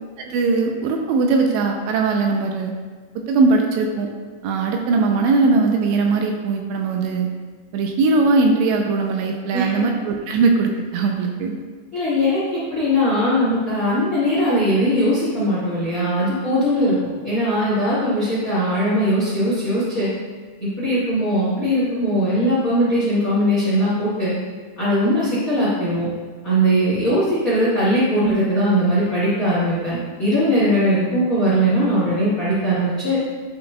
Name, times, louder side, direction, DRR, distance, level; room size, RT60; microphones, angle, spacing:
voice 1, 0.3-2.7 3.2-4.1 4.4-7.3 7.7-11.5 28.2-28.3, right 3 dB, 80° right, 2 dB, 2.7 m, -20 dB
voice 2, 11.9-20.1 20.6-24.3 24.8-26.1 26.4-33.2, equal, 55° left, -9 dB, 0.9 m, -20 dB
10.5 x 5.7 x 2.3 m, 1.5 s
omnidirectional pair, 5.3 m